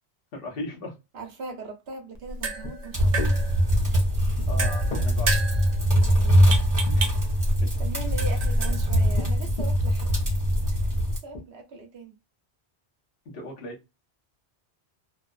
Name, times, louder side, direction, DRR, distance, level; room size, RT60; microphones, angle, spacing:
voice 1, 0.3-1.0 4.5-5.3 13.2-13.8, left 2 dB, 60° left, 1.1 m, -36 dB
voice 2, 1.1-3.1 5.9-6.6 7.8-10.2 10.7-12.1, right 4 dB, 65° right, 1.0 m, -40 dB
sound 1, 2.1-10.8, right 4 dB, 50° right, 0.6 m, -35 dB
sound 2, 2.6-2.7 3.0-3.3 4.4-5.1 6.9-7.6 8.2-8.5 9.1-9.9 10.6-10.8 11.1-11.4, left 2 dB, 45° left, 0.7 m, -36 dB
sound 3, 2.9-11.2, equal, 20° right, 1.1 m, -22 dB
2.9 x 2.1 x 2.3 m
omnidirectional pair, 1.1 m